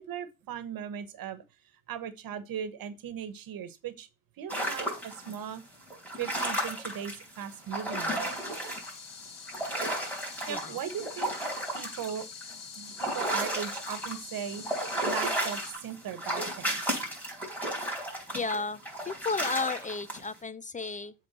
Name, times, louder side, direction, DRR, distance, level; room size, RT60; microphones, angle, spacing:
voice 1, 0.0-1.4 1.9-4.1 4.4-5.6 6.2-8.4 10.5-11.3 11.7-12.3 12.7-16.8, right 8 dB, 85° right, 1.2 m, -38 dB
sound 1, 4.5-5.3 5.9-9.0 9.2-14.2 14.5-20.3, right 1 dB, 5° left, 4.1 m, -33 dB
sound 2, 8.2-15.7, left 6 dB, 70° left, 1.9 m, -45 dB
voice 2, 18.3-18.8 19.1-21.1, left 4 dB, 25° left, 0.4 m, -33 dB
7.7 x 3.6 x 6.0 m
cardioid pair, 105°, 34 cm